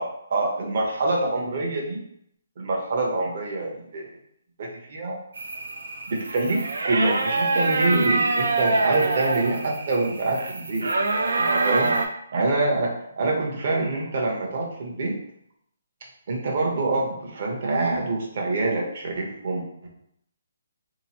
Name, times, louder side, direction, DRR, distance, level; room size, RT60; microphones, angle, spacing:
voice 1, 0.0-2.0 2.6-4.1 4.6-5.2 6.1-10.9 11.4-11.9 12.3-15.2 16.3-19.9, right 2 dB, 45° right, -1 dB, 0.9 m, -25 dB
sound 1, 5.4-12.1, right 3 dB, 80° right, 0.5 m, -25 dB
3.3 x 2.9 x 2.9 m, 0.71 s
hypercardioid pair, 170°, 0 cm